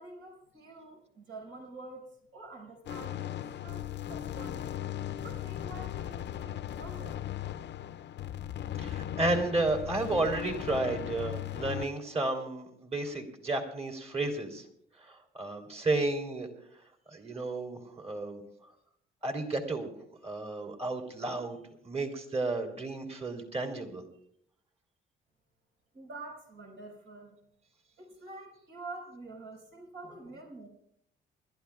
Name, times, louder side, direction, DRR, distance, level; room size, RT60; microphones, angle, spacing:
voice 1, 0.0-2.1 2.3-4.6 5.2-7.2 25.9-27.3 28.0-30.7, right 2 dB, 70° right, 0 dB, 5.7 m, -47 dB
sound 1, 2.9-11.9, left 11 dB, 60° left, 0.6 m, -37 dB
voice 2, 8.8-14.6 15.0-16.5 17.1-18.4 19.2-19.9 20.2-24.0, right 2 dB, 30° right, 3 dB, 3.2 m, -32 dB
29.0 x 13.0 x 2.4 m, 0.71 s
cardioid pair, 90°, 20 cm